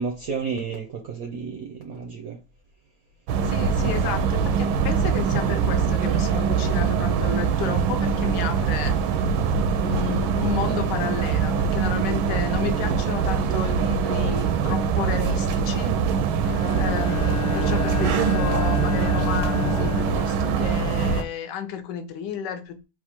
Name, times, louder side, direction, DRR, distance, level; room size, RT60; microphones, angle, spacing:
voice 1, 0.0-2.4, right 5 dB, 65° right, 0.9 m, -31 dB
sound 1, 3.3-21.2, right 6 dB, 85° right, 1.4 m, -23 dB
voice 2, 3.5-9.0 9.7-16.0 16.8-22.8, left 7 dB, 65° left, 1.2 m, -32 dB
Bowed string instrument, 16.4-21.1, left 12 dB, 85° left, 1.4 m, -32 dB
4.1 x 2.5 x 4.3 m
omnidirectional pair, 2.2 m